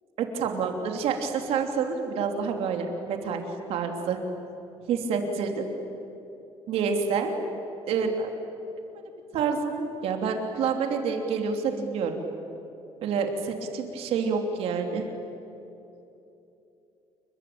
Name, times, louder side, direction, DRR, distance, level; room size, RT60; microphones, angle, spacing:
voice 1, 0.2-3.4 3.7-4.2 4.9-5.6 6.7-7.4 7.9-8.3 9.3-12.2 13.0-15.1, right 5 dB, 60° right, 4 dB, 3.1 m, -28 dB
29.5 x 23.0 x 8.7 m, 2.9 s
cardioid pair, 175°, 11 cm